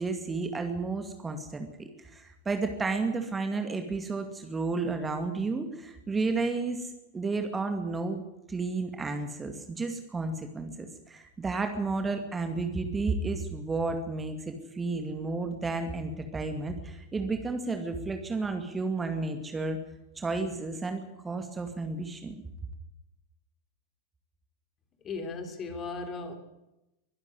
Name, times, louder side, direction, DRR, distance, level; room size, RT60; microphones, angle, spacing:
voice 1, 0.0-8.2 8.5-19.8 20.2-22.4, right 3 dB, 15° right, 6 dB, 2.2 m, -32 dB
voice 2, 25.0-26.4, left 4 dB, 25° left, 7 dB, 3.7 m, -36 dB
23.5 x 11.5 x 9.7 m, 0.92 s
figure-of-eight pair, 90°, 0 cm